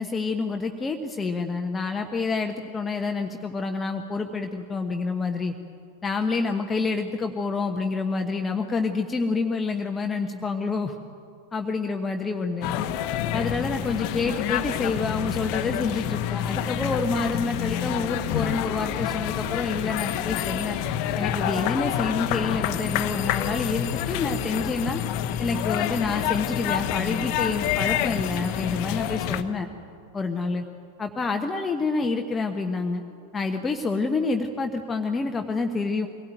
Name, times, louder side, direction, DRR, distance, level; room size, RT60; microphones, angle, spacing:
voice 1, 0.0-5.5 6.0-10.9 11.5-12.7 13.3-20.8 21.1-25.0 25.4-29.7 30.1-30.6 31.0-33.0 33.3-36.1, left 4 dB, 15° left, 4 dB, 1.2 m, -28 dB
sound 1, 12.6-29.4, left 10 dB, 45° left, 1.1 m, -28 dB
24.0 x 17.5 x 9.1 m, 2.5 s
figure-of-eight pair, 90°, 0 cm